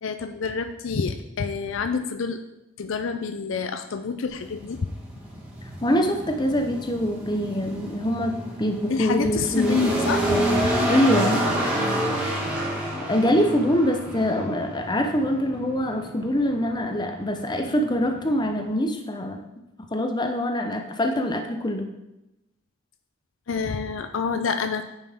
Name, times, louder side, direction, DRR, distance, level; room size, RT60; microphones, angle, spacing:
voice 1, 0.0-2.4 2.8-4.8 8.9-10.7 23.5-24.8, left 5 dB, 65° left, 8 dB, 0.5 m, -28 dB
sound 1, 4.3-18.7, right 1 dB, 5° right, 1.4 m, -29 dB
voice 2, 5.8-9.8 10.8-11.5 12.6-19.4 19.9-21.9, equal, 20° left, 4 dB, 0.8 m, -24 dB
9.3 x 5.4 x 3.6 m, 0.94 s
head